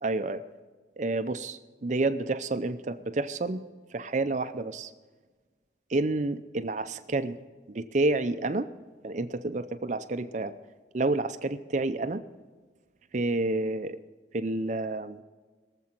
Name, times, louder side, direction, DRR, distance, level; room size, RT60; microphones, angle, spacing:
voice 1, 0.0-0.4 1.0-3.6 3.9-4.9 5.9-7.4 7.7-8.7 9.0-10.5 10.9-12.2 13.1-14.0 14.3-15.2, right 2 dB, 40° right, 10 dB, 0.5 m, -29 dB
22.0 x 7.5 x 4.5 m, 1.4 s
head